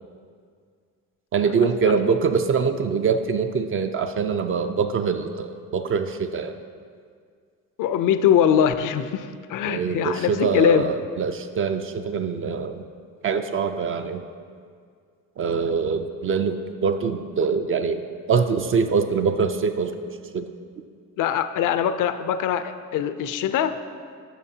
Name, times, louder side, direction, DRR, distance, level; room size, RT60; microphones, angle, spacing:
voice 1, 1.3-6.5 9.7-12.8 13.2-14.2 15.4-18.0 18.3-20.0 20.3-20.5, right 5 dB, 40° right, 7 dB, 0.4 m, -24 dB
voice 2, 7.8-10.9 21.2-23.8, left 9 dB, 65° left, 11 dB, 0.5 m, -22 dB
11.0 x 6.7 x 2.8 m, 2.1 s
cardioid pair, 110°, 34 cm